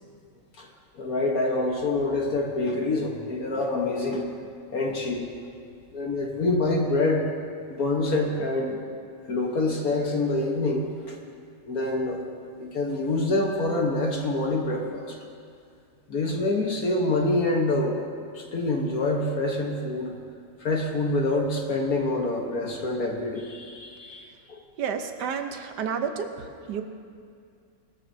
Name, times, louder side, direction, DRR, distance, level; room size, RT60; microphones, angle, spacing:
voice 1, 1.0-4.3 4.7-5.3 5.9-7.3 7.7-8.8 9.3-11.2 11.7-12.2 12.6-15.1 16.1-18.0 18.3-20.1 20.6-24.6, left 2 dB, 55° left, 0 dB, 1.5 m, -26 dB
voice 2, 24.8-26.8, right 7 dB, 65° right, 6 dB, 1.4 m, -31 dB
20.0 x 13.5 x 2.7 m, 2.3 s
omnidirectional pair, 2.0 m